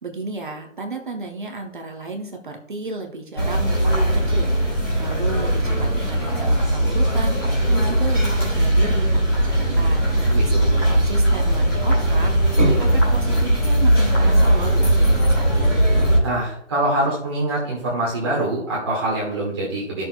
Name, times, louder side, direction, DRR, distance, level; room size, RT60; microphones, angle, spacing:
voice 1, 0.0-15.8, right 3 dB, 40° right, 2 dB, 0.8 m, -33 dB
sound 1, 3.4-16.2, right 1 dB, 20° left, 2.2 m, -19 dB
voice 2, 10.3-10.8 16.2-20.0, right 1 dB, 20° right, -7 dB, 1.5 m, -24 dB
14.0 x 6.2 x 2.3 m, 0.68 s
hypercardioid pair, 175°, 38 cm